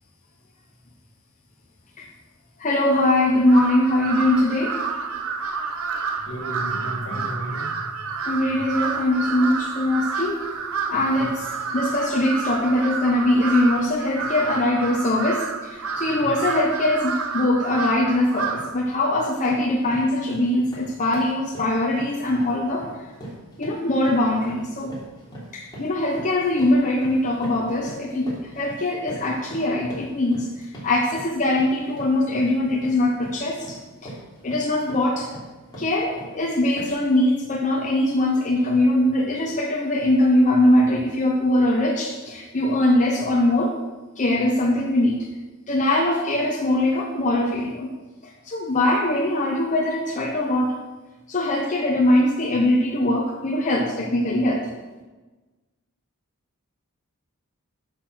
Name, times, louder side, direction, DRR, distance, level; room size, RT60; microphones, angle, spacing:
voice 1, 2.6-4.8 8.3-10.5 10.9-22.9 23.6-24.9 25.5-28.3 28.6-30.5 30.8-34.1 34.4-35.3 35.8-43.8 44.2-45.2 45.7-47.9 48.2-50.7 51.3-54.7, left 1 dB, 35° left, -1 dB, 0.9 m, -22 dB
Crow, 3.5-18.8, right 5 dB, 70° right, 0.8 m, -29 dB
voice 2, 6.3-7.7 11.1-11.3 16.0-16.3, equal, 65° left, 1 dB, 1.7 m, -33 dB
sound 1, 17.8-18.0 18.4-18.8 19.1-36.4 36.8-37.1, right 1 dB, 20° left, 3.2 m, -41 dB
8.2 x 6.5 x 6.3 m, 1.2 s
head